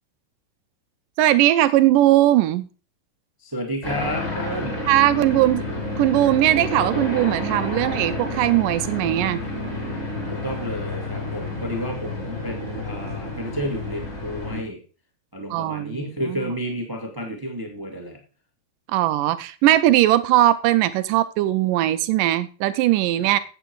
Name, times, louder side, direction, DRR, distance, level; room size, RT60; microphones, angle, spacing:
voice 1, 1.2-2.7 4.9-5.6 6.0-9.4 15.5-16.4 18.9-23.4, right 14 dB, 80° right, 12 dB, 2.1 m, -19 dB
voice 2, 3.4-4.8 10.3-14.8 15.3-18.2 23.2-23.3, equal, 20° right, 1 dB, 0.5 m, -31 dB
sound 1, 3.8-14.6, left 2 dB, 20° left, 3.4 m, -30 dB
8.8 x 8.0 x 4.6 m, 0.36 s
omnidirectional pair, 4.1 m